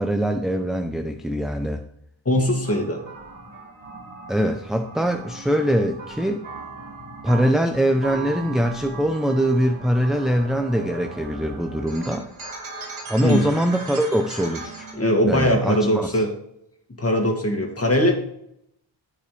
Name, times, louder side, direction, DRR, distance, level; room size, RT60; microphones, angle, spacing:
voice 1, 0.0-1.8 4.3-6.4 7.2-12.3 13.1-14.8 15.3-16.1, equal, ahead, 5 dB, 0.7 m, -23 dB
voice 2, 2.3-3.0 13.2-13.5 14.9-16.3 17.0-18.1, equal, 30° left, 2 dB, 2.5 m, -20 dB
sound 1, 2.6-14.9, right 3 dB, 75° right, 3.1 m, -38 dB
15.0 x 5.4 x 3.5 m, 0.75 s
cardioid pair, 70°, 50 cm